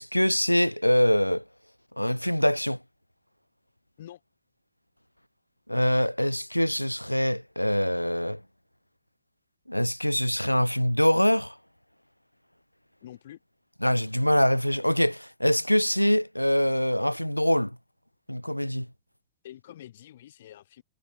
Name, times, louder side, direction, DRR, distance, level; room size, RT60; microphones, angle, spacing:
voice 1, 0.0-1.4 2.0-2.8 5.7-8.4 9.7-11.6 13.8-17.8 18.3-18.9, equal, 90° left, 0.4 m, -24 dB
voice 2, 13.0-13.4 19.4-20.8, left 12 dB, 60° left, 2.1 m, -46 dB
figure-of-eight pair, 90°, 0 cm